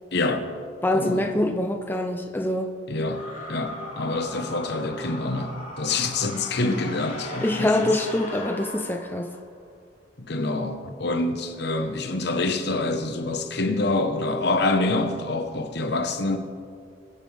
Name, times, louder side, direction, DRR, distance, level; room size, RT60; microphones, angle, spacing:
voice 1, 0.1-0.5 0.9-1.3 2.9-7.9 10.2-16.4, left 2 dB, 60° left, 1.1 m, -26 dB
voice 2, 0.8-2.7 7.4-9.3, left 1 dB, 10° left, 0.5 m, -24 dB
sound 1, 3.1-9.5, left 1 dB, 45° left, 3.5 m, -39 dB
22.5 x 10.0 x 3.4 m
head